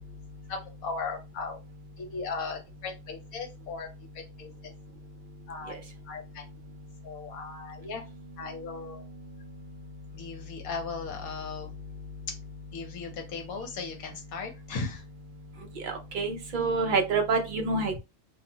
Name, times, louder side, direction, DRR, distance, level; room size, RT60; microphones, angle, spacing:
voice 1, 0.5-1.6 2.0-3.9 4.1-4.5 5.5-5.8 6.1-6.4 7.0-8.0 8.4-9.0 10.1-11.7 12.7-15.0, left 4 dB, 75° left, 4 dB, 1.2 m, -37 dB
voice 2, 15.8-18.0, right 4 dB, 70° right, 3 dB, 0.4 m, -27 dB
2.7 x 2.1 x 2.7 m, 0.25 s
omnidirectional pair, 1.5 m